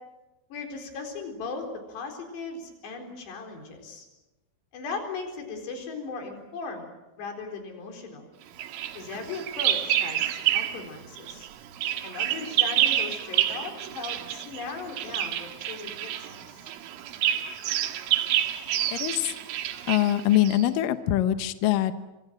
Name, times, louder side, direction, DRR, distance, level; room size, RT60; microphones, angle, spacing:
voice 1, 0.5-4.1 4.7-6.9 7.2-8.3 9.0-11.5 12.0-16.7, left 4 dB, 60° left, 3 dB, 6.3 m, -38 dB
Bird vocalization bird call bird song, 8.6-10.9 11.2-20.7, right 12 dB, 90° right, 4.0 m, -28 dB
voice 2, 18.9-19.3 19.9-21.9, left 13 dB, 80° left, 10 dB, 2.0 m, -23 dB
26.0 x 25.5 x 7.6 m, 1.0 s
omnidirectional pair, 5.5 m